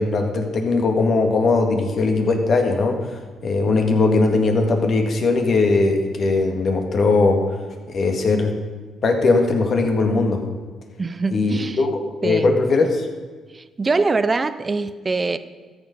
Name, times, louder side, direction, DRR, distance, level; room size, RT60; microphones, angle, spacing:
voice 1, 0.0-7.4 7.9-8.5 9.0-10.4 11.3-13.1, left 3 dB, 55° left, 4 dB, 1.9 m, -19 dB
voice 2, 11.0-11.8 12.2-12.6 13.5-15.4, right 3 dB, 30° right, 13 dB, 0.6 m, -23 dB
13.5 x 7.0 x 5.4 m, 1.4 s
cardioid pair, 90°, 0 cm